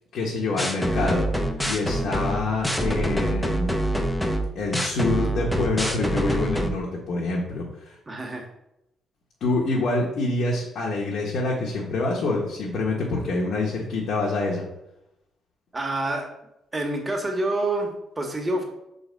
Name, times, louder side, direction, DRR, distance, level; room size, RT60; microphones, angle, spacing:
voice 1, 0.1-1.2 1.6-3.7 4.5-8.0 9.4-14.6, left 2 dB, 65° left, -3 dB, 1.5 m, -26 dB
sound 1, 0.6-6.7, right 1 dB, 5° left, 0.9 m, -25 dB
voice 2, 8.1-8.4 15.7-16.3 16.7-18.6, right 2 dB, 20° right, 2 dB, 1.7 m, -27 dB
5.6 x 4.0 x 5.3 m, 0.85 s
cardioid pair, 90°, 0 cm